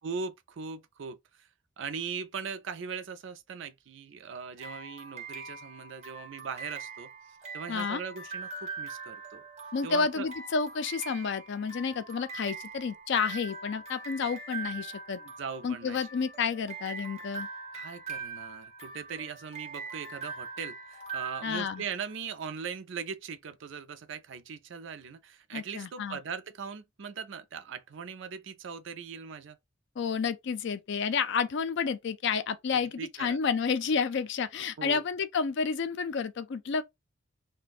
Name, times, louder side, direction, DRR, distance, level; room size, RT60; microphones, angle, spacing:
voice 1, 0.0-1.5 1.8-9.4 9.8-10.3 15.2-16.0 17.7-29.6 32.7-33.4 34.8-35.0, right 6 dB, 70° right, 0.5 m, -40 dB
sound 1, 4.6-22.2, right 4 dB, 35° right, 1.1 m, -42 dB
voice 2, 7.7-8.0 9.7-15.2 15.6-17.5 21.4-21.8 25.5-26.2 30.0-36.8, left 5 dB, 65° left, 0.4 m, -30 dB
2.5 x 2.2 x 3.9 m
head